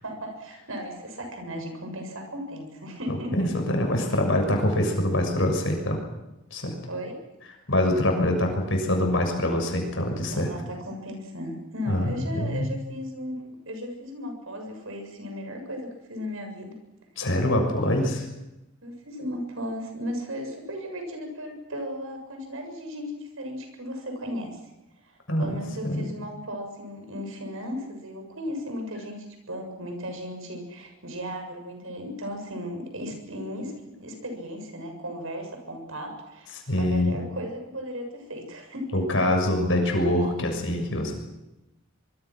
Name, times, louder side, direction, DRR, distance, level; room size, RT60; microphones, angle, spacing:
voice 1, 0.0-3.5 6.9-7.2 10.3-16.7 18.8-24.6 25.0-39.0, equal, 75° right, 4 dB, 7.1 m, -36 dB
voice 2, 3.1-6.0 6.5-6.8 7.7-10.5 11.9-12.7 17.2-18.2 25.3-26.0 36.7-37.1 38.9-41.1, left 1 dB, 65° left, 3 dB, 6.8 m, -24 dB
25.5 x 24.0 x 6.2 m, 0.95 s
head